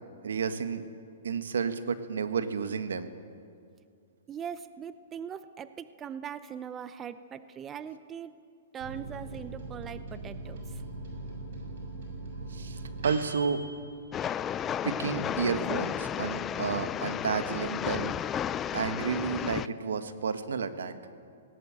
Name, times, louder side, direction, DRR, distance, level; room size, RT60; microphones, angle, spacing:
voice 1, 0.2-0.8 1.2-3.1 12.5-13.6 14.8-18.1 18.7-20.9, right 6 dB, 85° right, 10 dB, 1.6 m, -31 dB
voice 2, 4.3-8.3 8.7-10.8, right 8 dB, 20° right, 13 dB, 0.7 m, -41 dB
Microwave oven, 8.8-14.9 15.3-15.4 15.6-16.3, right 2 dB, 65° right, 6.9 m, -41 dB
Train, 14.1-19.7, left 9 dB, 20° left, 0.4 m, -33 dB
19.0 x 18.5 x 8.9 m, 2.3 s
hypercardioid pair, 145°, 0 cm